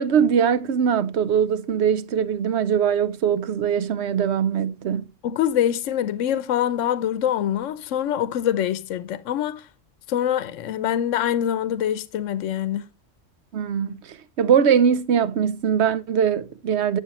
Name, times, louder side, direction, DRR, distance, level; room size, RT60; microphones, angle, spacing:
voice 1, 0.0-5.1 13.5-17.0, right 7 dB, 65° right, 0.9 m, -21 dB
voice 2, 5.2-9.7 10.1-12.8, left 10 dB, 80° left, 1.0 m, -24 dB
11.5 x 7.5 x 3.0 m
omnidirectional pair, 1.3 m